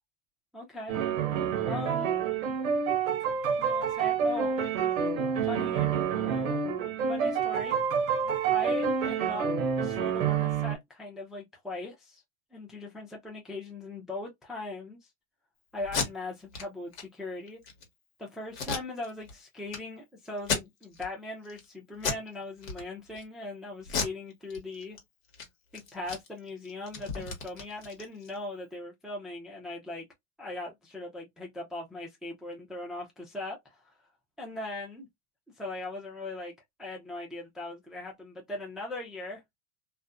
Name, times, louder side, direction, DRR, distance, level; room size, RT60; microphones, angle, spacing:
voice 1, 0.5-0.9 1.7-2.1 3.6-4.6 5.4-5.9 6.2-6.6 7.1-7.8 8.5-9.5 9.8-12.2 12.5-15.0 15.7-17.6 18.2-25.0 25.7-30.0 30.4-33.9 34.4-35.1 35.6-36.5 36.8-39.4, left 2 dB, ahead, 0.4 m, -39 dB
sound 1, 0.9-10.8, right 7 dB, 85° right, 0.7 m, -28 dB
Packing tape duct tape, 15.8-16.1 16.5-16.6 16.9-17.0 17.5-17.8 18.5-19.3 19.7-19.8 20.4-21.1 21.4-21.7 22.0-22.3 22.6-23.2 23.8-25.0 25.3-25.5 25.7-28.4, left 5 dB, 85° left, 1.1 m, -34 dB
2.5 x 2.1 x 2.3 m
hypercardioid pair, 105°, 40 cm